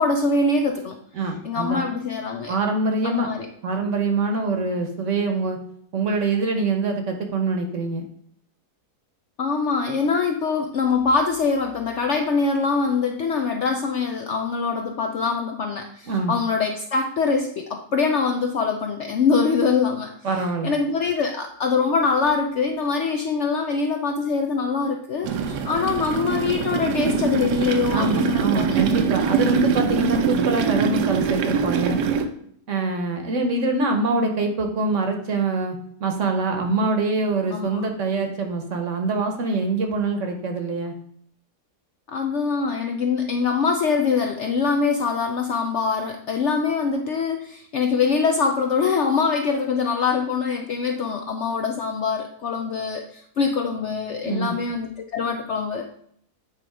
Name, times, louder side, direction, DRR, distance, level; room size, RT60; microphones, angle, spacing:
voice 1, 0.0-1.0 1.4-2.6 3.0-3.5 9.4-20.1 20.6-28.8 37.5-37.8 42.1-55.8, left 5 dB, 65° left, 4 dB, 0.7 m, -23 dB
voice 2, 1.1-1.8 2.5-3.3 3.6-5.6 5.9-8.1 16.1-16.3 20.2-20.7 27.9-32.0 32.7-40.9 54.2-54.6, right 3 dB, 55° right, 4 dB, 1.1 m, -24 dB
sound 1, 25.2-32.2, right 6 dB, 85° right, 1.3 m, -23 dB
8.4 x 3.1 x 4.8 m, 0.66 s
omnidirectional pair, 1.7 m